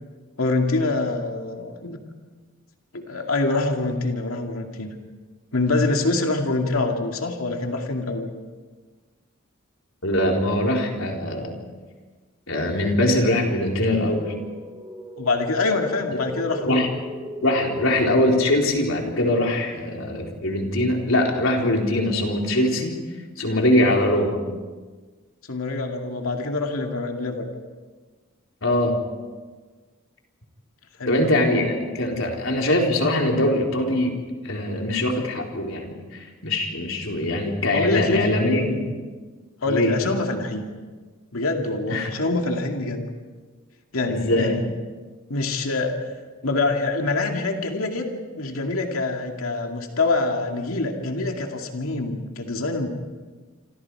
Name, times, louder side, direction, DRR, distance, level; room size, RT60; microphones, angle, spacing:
voice 1, 0.4-2.0 2.9-4.9 5.5-8.3 15.2-16.9 25.5-27.5 31.0-31.4 37.7-38.3 39.6-40.6 41.3-43.1 43.9-44.7 45.3-46.1 46.4-52.9, left 2 dB, 85° left, 2 dB, 2.4 m, -25 dB
voice 2, 10.0-11.6 12.5-14.3 16.6-16.9 17.4-23.0 23.4-24.4 28.6-29.0 31.1-34.2 34.4-38.9 39.7-40.0 41.9-42.1 44.1-44.6, left 1 dB, 70° left, 1 dB, 4.0 m, -22 dB
sound 1, 13.6-18.6, equal, 15° right, 2.8 m, -37 dB
27.0 x 27.0 x 4.8 m, 1.4 s
head